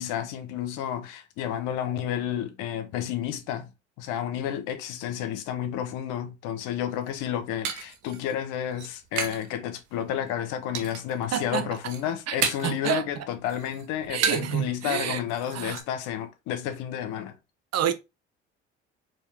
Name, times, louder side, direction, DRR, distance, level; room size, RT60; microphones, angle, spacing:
voice 1, 0.0-3.7 4.0-17.3, left 10 dB, 75° left, 1.0 m, -31 dB
sound 1, 6.9-9.5 9.8-10.3 10.7-11.2 11.6-12.8 13.2-14.6 14.9-15.0 15.3-15.8, right 7 dB, 70° right, 1.2 m, -33 dB
voice 2, 11.3-11.7 12.3-13.3 14.1-15.2 15.5-15.8 17.7-17.9, right 10 dB, 55° right, 0.9 m, -29 dB
4.7 x 3.1 x 3.4 m
hypercardioid pair, 60°, 32 cm